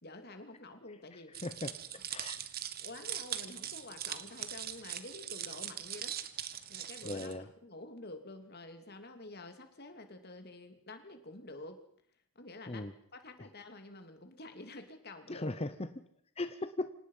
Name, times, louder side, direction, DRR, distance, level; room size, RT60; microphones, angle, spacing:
voice 1, 0.0-1.3 2.8-6.2 6.7-11.8 12.3-15.5, left 2 dB, 45° left, 7 dB, 2.7 m, -49 dB
sound 1, 1.3-7.3, right 10 dB, 45° right, 1.3 m, -41 dB
voice 2, 1.4-1.7 2.1-2.4 7.0-7.5 12.7-12.9 15.3-16.0 16.4-16.9, left 2 dB, 25° left, 10 dB, 0.9 m, -38 dB
26.0 x 18.5 x 5.6 m, 0.66 s
head